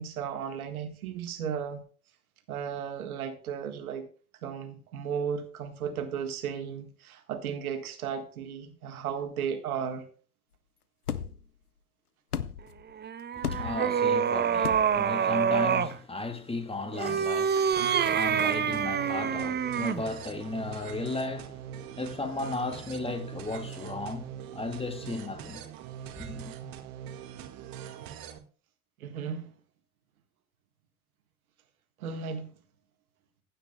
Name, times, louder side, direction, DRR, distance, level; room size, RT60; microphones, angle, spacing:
voice 1, 0.0-1.8 2.5-4.1 4.4-10.0 29.0-29.5 32.0-32.5, right 7 dB, 70° right, 1.7 m, -35 dB
sound 1, 11.1-11.5 12.3-12.8 13.4-13.9 14.6-15.1, left 8 dB, 90° left, 0.7 m, -34 dB
sound 2, 13.0-16.0 16.9-20.1, right 7 dB, 25° right, 0.9 m, -27 dB
voice 2, 13.4-25.7 26.2-26.5, left 2 dB, 10° left, 2.0 m, -35 dB
sound 3, 17.7-28.4, right 9 dB, 50° right, 1.8 m, -42 dB
15.5 x 9.9 x 2.3 m
figure-of-eight pair, 70°, 44 cm